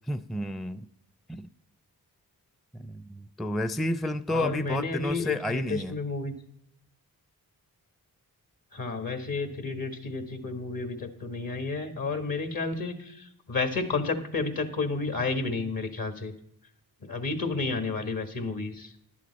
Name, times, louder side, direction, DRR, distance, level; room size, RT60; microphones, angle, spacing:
voice 1, 0.1-0.9 1.3-1.5 2.7-5.9, left 1 dB, ahead, 11 dB, 0.4 m, -31 dB
voice 2, 4.3-6.3 8.7-16.3 17.0-18.9, left 3 dB, 60° left, 6 dB, 1.7 m, -31 dB
11.5 x 8.5 x 4.1 m, 0.72 s
cardioid pair, 50°, 38 cm